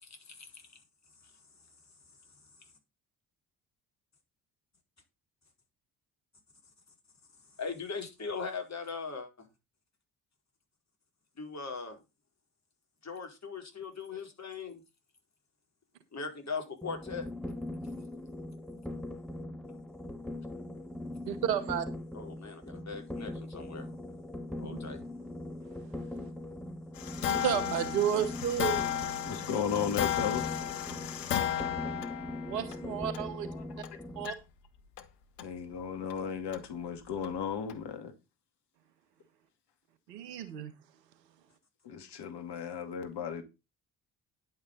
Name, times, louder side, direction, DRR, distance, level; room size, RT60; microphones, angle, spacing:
voice 1, 0.0-0.6 7.6-9.5 11.4-12.0 13.0-14.8 16.1-17.2 22.1-23.9 24.6-25.0, left 5 dB, 35° left, 4.7 m, -40 dB
sound 1, 16.8-34.3, left 1 dB, ahead, 2.8 m, -41 dB
voice 2, 21.3-21.9 27.2-28.8 32.4-33.5 34.1-34.3 40.1-40.7, right 9 dB, 75° right, 1.6 m, -31 dB
sound 2, 27.0-32.8 33.1-33.2 33.8-33.9 34.2-34.3 35.0-35.1 35.4-35.5 36.1-36.2 36.5-36.6 37.2-37.3 37.7-37.8, left 11 dB, 75° left, 1.2 m, -34 dB
voice 3, 29.3-30.4 33.5-33.6 35.4-38.1 41.8-43.4, left 7 dB, 55° left, 2.3 m, -35 dB
10.5 x 9.5 x 3.9 m
figure-of-eight pair, 45°, 49 cm